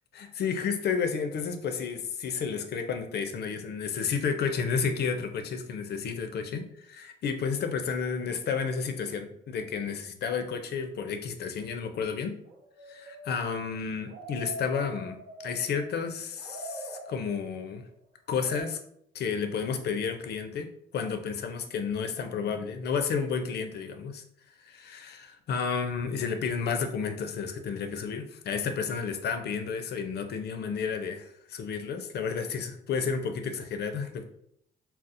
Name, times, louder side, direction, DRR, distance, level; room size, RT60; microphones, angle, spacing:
voice 1, 0.1-12.3 12.9-17.9 18.3-18.8 19.1-20.7 20.9-24.2 24.6-34.2, left 6 dB, 60° left, 7 dB, 0.5 m, -31 dB
sound 1, 12.4-16.0 16.4-17.7 18.3-18.6, right 1 dB, 50° right, 0.7 m, -43 dB
4.1 x 2.0 x 2.5 m, 0.72 s
supercardioid pair, 70°, 19 cm